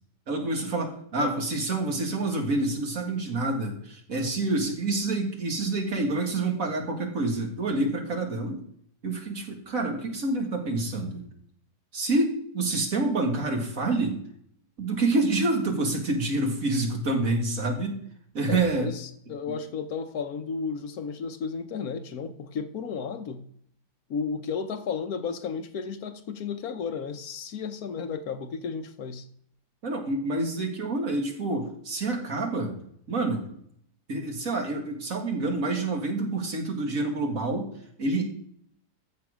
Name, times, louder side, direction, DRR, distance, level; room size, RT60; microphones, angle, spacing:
voice 1, 0.3-8.6 9.0-11.2 11.9-14.2 14.8-18.0 18.3-18.9 29.8-32.8 33.1-33.5 34.1-37.7 38.0-38.3, right 2 dB, 55° right, 2 dB, 2.2 m, -27 dB
voice 2, 18.5-23.4 24.1-29.3, left 5 dB, 65° left, 9 dB, 1.2 m, -33 dB
14.0 x 6.5 x 4.9 m, 0.67 s
omnidirectional pair, 1.8 m